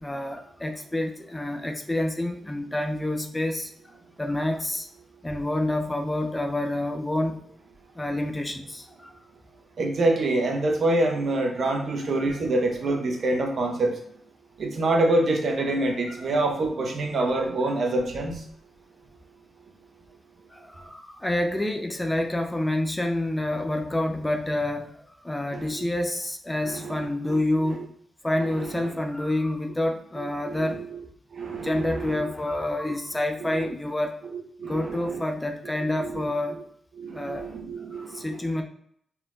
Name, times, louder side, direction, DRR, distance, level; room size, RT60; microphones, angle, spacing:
voice 1, 0.0-3.7 4.2-4.9 5.2-7.4 8.0-9.1 16.1-16.3 20.5-25.0 25.2-27.9 28.2-30.8 31.5-34.2 34.6-36.6 37.1-37.5 37.9-38.6, left 1 dB, 15° left, 4 dB, 0.6 m, -28 dB
voice 2, 9.8-14.0 14.6-18.4 25.5-25.9 26.7-27.4 28.4-28.9 30.2-31.0 31.3-32.3 33.5-33.7 34.6-35.2 36.0-36.2 37.0-38.4, right 2 dB, 60° right, 2 dB, 1.0 m, -26 dB
4.3 x 3.7 x 2.4 m, 0.68 s
supercardioid pair, 45°, 0 cm